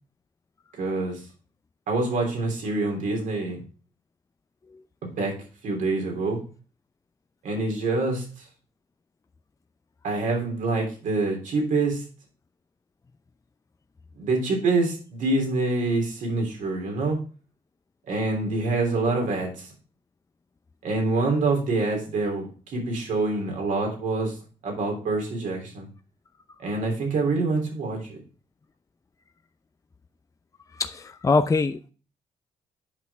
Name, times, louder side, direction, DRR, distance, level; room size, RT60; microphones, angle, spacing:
voice 1, 0.8-1.2 1.9-3.6 5.0-5.3 5.6-6.4 7.4-8.2 10.0-12.0 14.2-17.2 18.1-19.7 20.8-24.4 24.6-25.9 26.6-28.2, right 3 dB, 70° right, 1 dB, 3.3 m, -26 dB
voice 2, 30.8-31.9, left 3 dB, 25° left, 9 dB, 0.6 m, -23 dB
8.4 x 5.3 x 3.5 m, 0.35 s
supercardioid pair, 60°, 14 cm